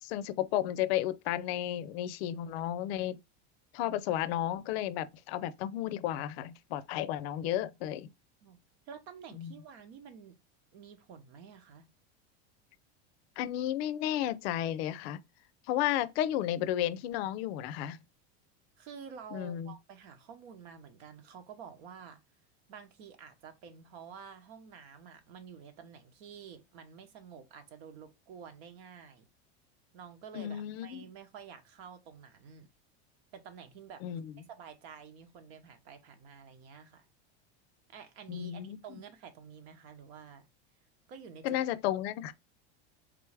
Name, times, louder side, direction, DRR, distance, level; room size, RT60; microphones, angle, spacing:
voice 1, 0.0-3.2 3.7-8.1 9.4-9.5 13.4-15.2 15.7-18.0 19.3-19.7 30.3-31.1 34.0-34.3 38.3-39.0 41.4-42.3, left 12 dB, 70° left, 0.5 m, -33 dB
voice 2, 8.9-10.4 10.7-11.9 18.8-22.2 22.7-29.3 29.9-32.7 33.3-34.1 34.5-37.1 37.9-40.5 41.1-41.6 42.2-42.3, right 7 dB, 70° right, 1.0 m, -50 dB
3.7 x 3.4 x 3.3 m
supercardioid pair, 155°, 32 cm